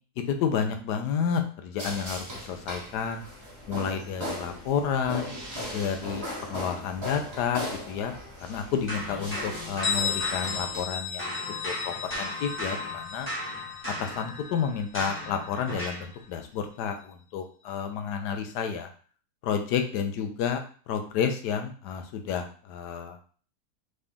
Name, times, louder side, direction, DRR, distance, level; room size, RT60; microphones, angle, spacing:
voice 1, 0.2-3.2 3.7-5.3 5.7-8.1 8.4-11.4 11.6-13.3 13.9-18.9 19.4-23.2, left 7 dB, 80° left, 6 dB, 1.2 m, -30 dB
sound 1, 1.8-10.8, left 1 dB, 20° right, 1.4 m, -38 dB
sound 2, 8.9-10.9 11.2-16.1, left 1 dB, 10° left, 1.0 m, -36 dB
Bell, 9.8-15.3, left 6 dB, 55° left, 0.8 m, -34 dB
3.9 x 3.3 x 3.5 m, 0.42 s
omnidirectional pair, 1.8 m